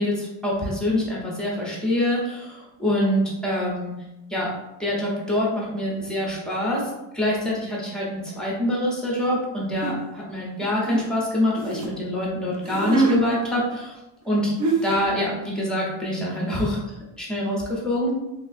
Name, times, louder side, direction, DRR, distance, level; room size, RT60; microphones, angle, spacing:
voice 1, 0.0-3.9 4.3-4.5 4.8-13.9 14.2-14.5 14.8-18.1, left 1 dB, ahead, -5 dB, 0.6 m, -25 dB
sound 1, 9.8-10.0 10.6-11.9 12.5-13.2 14.2-14.3 14.6-15.1, right 3 dB, 40° right, 0.4 m, -24 dB
3.5 x 2.5 x 2.4 m, 0.95 s
wide cardioid pair, 175°, 50 cm